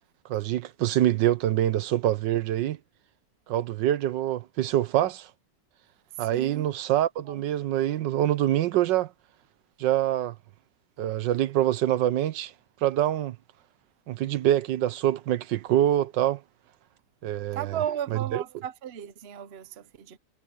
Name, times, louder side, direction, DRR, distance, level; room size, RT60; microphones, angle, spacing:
voice 1, 0.3-2.8 3.5-5.3 6.2-9.1 9.8-10.3 11.0-12.5 12.8-13.4 14.1-16.4 17.2-17.8 18.1-18.4, right 12 dB, 85° right, 1.4 m, -25 dB
voice 2, 6.3-6.7 7.3-7.4 17.5-20.2, right 9 dB, 45° right, 0.9 m, -35 dB
omnidirectional pair, 1.9 m